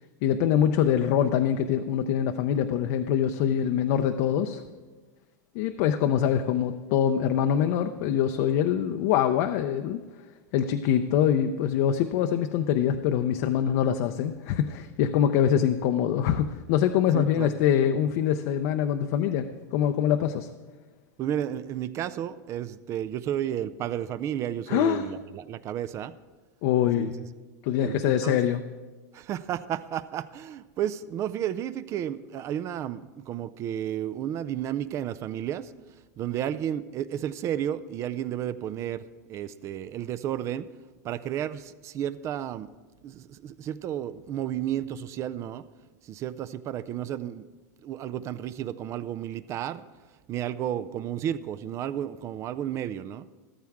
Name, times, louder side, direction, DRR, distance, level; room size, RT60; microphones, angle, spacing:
voice 1, 0.2-4.6 5.5-10.0 10.5-20.5 24.7-25.0 26.6-27.1 27.6-28.6, left 9 dB, 55° left, 6 dB, 0.6 m, -24 dB
voice 2, 17.1-17.5 21.2-26.2 27.0-27.1 27.8-28.5 29.1-35.7 36.2-39.0 39.3-40.7 41.0-42.7 43.0-45.6 46.0-47.5 47.8-49.8 50.3-53.3, right 10 dB, 30° right, 15 dB, 0.4 m, -32 dB
13.5 x 13.5 x 3.6 m, 1.3 s
supercardioid pair, 140°, 9 cm